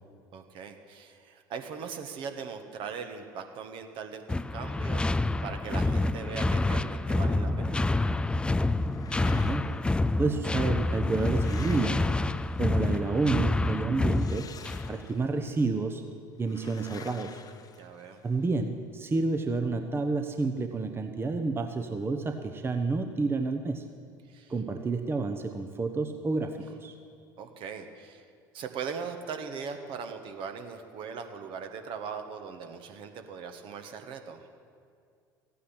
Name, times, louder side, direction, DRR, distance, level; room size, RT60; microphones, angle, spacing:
voice 1, 0.3-7.8 17.7-18.2 24.3-24.5 27.4-28.2 28.5-34.4, right 6 dB, 50° right, 6 dB, 1.5 m, -40 dB
sound 1, 4.3-15.0, left 2 dB, 10° left, 0.4 m, -28 dB
sound 2, 8.7-9.9 10.7-12.9 14.0-15.4 16.5-18.4, left 7 dB, 35° left, 1.1 m, -49 dB
voice 2, 9.2-9.6 10.2-12.0 12.6-14.5 14.9-16.0 16.4-17.4 18.2-23.8 24.5-26.9, right 3 dB, 20° right, 6 dB, 1.0 m, -29 dB
14.5 x 9.3 x 8.8 m, 2.2 s
hypercardioid pair, 70°, 11 cm